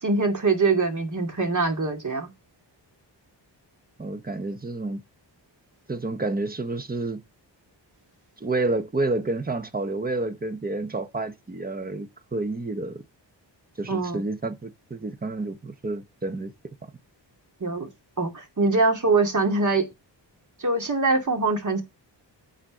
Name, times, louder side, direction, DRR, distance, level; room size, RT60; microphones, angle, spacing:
voice 1, 0.0-2.3 13.9-14.2 17.6-17.9 18.2-19.8 20.6-21.8, right 3 dB, 40° right, 2.5 m, -23 dB
voice 2, 4.0-5.0 5.9-7.2 8.4-13.0 13.8-16.5, right 2 dB, 20° right, 0.9 m, -29 dB
8.9 x 4.3 x 6.4 m
wide cardioid pair, 120°, 44 cm